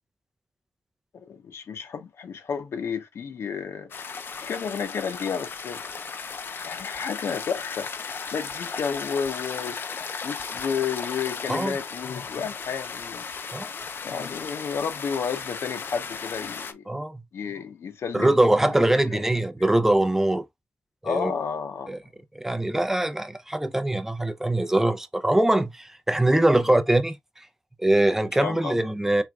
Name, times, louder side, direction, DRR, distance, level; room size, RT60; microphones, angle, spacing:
voice 1, 1.1-3.9 4.4-5.8 6.6-7.9 8.3-9.8 10.2-13.3 14.0-16.8 17.3-18.3 18.7-19.2 21.0-22.0 26.7-26.8 28.4-28.8, left 6 dB, 85° left, 0.9 m, -31 dB
sound 1, 3.9-16.7, left 5 dB, 55° left, 0.6 m, -36 dB
voice 2, 16.9-17.2 18.1-20.4 21.0-21.3 21.9-22.0 22.3-27.5 27.8-29.2, right 1 dB, 10° right, 0.5 m, -22 dB
4.6 x 3.4 x 2.4 m
wide cardioid pair, 120°, 4 cm